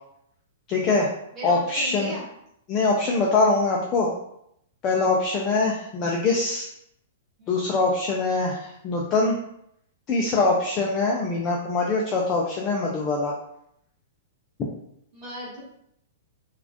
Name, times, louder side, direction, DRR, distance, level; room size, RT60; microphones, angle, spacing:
voice 1, 0.7-1.1 1.4-2.1 2.7-4.1 4.8-6.7 7.5-9.4 10.1-13.3, left 3 dB, 20° left, -2 dB, 0.4 m, -23 dB
voice 2, 1.3-2.3 7.4-7.6 15.1-15.6, equal, 15° right, -8 dB, 1.5 m, -37 dB
4.0 x 2.4 x 2.9 m, 0.75 s
hypercardioid pair, 170°, 0 cm